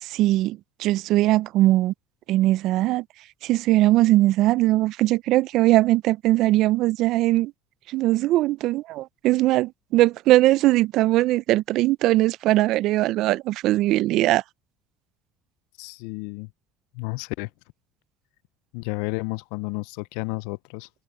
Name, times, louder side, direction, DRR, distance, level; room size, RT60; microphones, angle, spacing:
voice 1, 0.0-1.9 2.3-3.0 3.4-7.5 7.9-14.4, right 16 dB, 60° right, 0.3 m, -20 dB
voice 2, 15.8-16.5 16.9-17.5 18.7-20.9, left 26 dB, 80° left, 0.3 m, -31 dB
cardioid pair, 135°, 0 cm